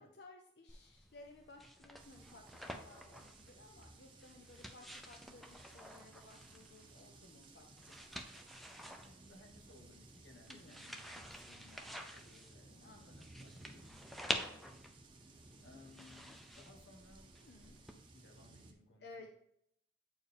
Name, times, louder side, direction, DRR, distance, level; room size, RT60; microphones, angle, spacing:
voice 1, 0.0-8.4 10.5-10.8 12.7-13.1 17.4-17.8 19.0-19.3, left 2 dB, 65° left, 2 dB, 0.6 m, -58 dB
sound 1, 0.7-17.9, equal, ahead, 0.5 m, -49 dB
sound 2, 2.0-18.7, right 2 dB, 30° right, 0.8 m, -59 dB
voice 2, 8.9-13.9 15.2-15.3 15.6-17.3 18.1-19.3, left 2 dB, 90° left, 3 dB, 1.2 m, -62 dB
8.4 x 4.5 x 3.5 m, 0.74 s
head